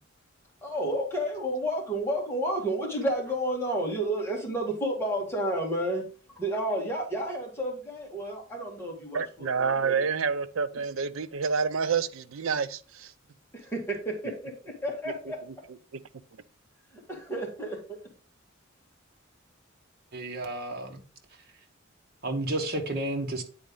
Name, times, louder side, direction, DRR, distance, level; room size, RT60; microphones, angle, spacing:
voice 1, 0.6-6.1 6.4-9.9 13.5-15.4 17.1-18.0, right 1 dB, 10° left, 2.1 m, -31 dB
voice 2, 9.1-13.1, right 5 dB, 75° right, 0.5 m, -28 dB
voice 3, 20.1-21.0 22.2-23.4, right 1 dB, 50° right, 1.4 m, -31 dB
9.0 x 4.1 x 3.8 m
head